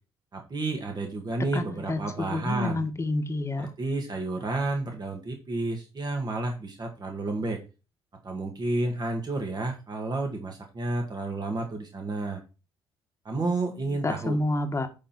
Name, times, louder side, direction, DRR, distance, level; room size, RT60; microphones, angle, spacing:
voice 1, 0.3-2.8 3.6-7.6 8.2-12.4 13.2-14.4, right 2 dB, 35° right, 3 dB, 2.0 m, -31 dB
voice 2, 1.5-3.7 13.4-14.9, left 2 dB, 25° left, 5 dB, 1.7 m, -29 dB
11.0 x 4.5 x 4.3 m, 0.31 s
hypercardioid pair, 50°, 12 cm